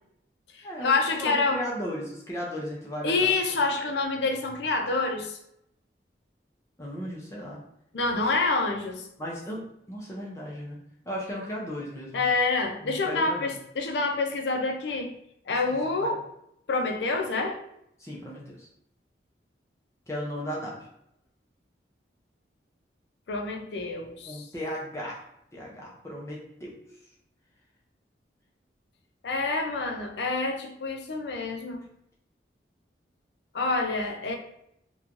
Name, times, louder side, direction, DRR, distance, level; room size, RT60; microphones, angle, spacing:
voice 1, 0.5-1.6 3.0-5.4 7.9-9.1 12.1-15.1 15.5-16.2 16.7-17.6 23.3-24.5 29.2-31.9 33.5-34.4, left 3 dB, 75° left, 3 dB, 0.4 m, -27 dB
voice 2, 1.2-3.3 6.8-7.6 8.1-8.3 9.2-10.8 11.0-12.2 12.8-13.5 15.7-16.1 18.0-18.7 20.1-20.9 24.3-25.3 25.5-26.8, equal, 15° left, -4 dB, 0.4 m, -36 dB
3.0 x 2.2 x 2.5 m, 0.77 s
head